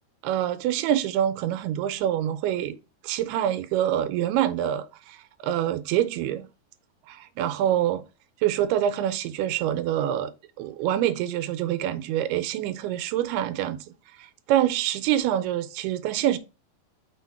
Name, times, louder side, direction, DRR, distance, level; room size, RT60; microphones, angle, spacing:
voice 1, 0.2-2.8 3.0-6.5 7.1-8.0 8.4-10.3 10.6-13.8 14.2-16.4, right 11 dB, 85° right, 2.7 m, -26 dB
6.3 x 4.7 x 4.7 m
omnidirectional pair, 4.6 m